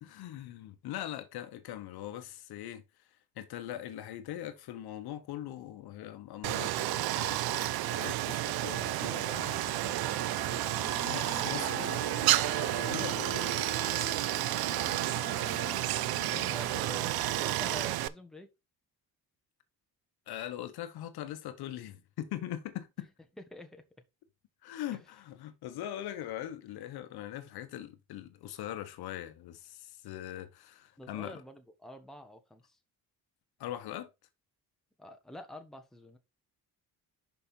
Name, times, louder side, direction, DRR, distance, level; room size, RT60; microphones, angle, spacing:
voice 1, 0.0-2.8 3.4-10.0 11.0-14.0 16.2-17.1 20.3-23.1 24.6-31.4 33.6-34.1, left 12 dB, 85° left, 1.0 m, -42 dB
Stream, 6.4-18.1, right 15 dB, 75° right, 0.5 m, -31 dB
Wind instrument woodwind instrument, 9.1-17.8, left 3 dB, 25° left, 2.1 m, -44 dB
voice 2, 10.2-10.9 14.7-15.0 15.5-15.7 16.5-18.5 23.4-23.8 24.9-25.0 31.0-32.8 35.0-36.2, left 1 dB, ahead, 1.1 m, -48 dB
5.8 x 5.2 x 4.4 m
cardioid pair, 135°, 37 cm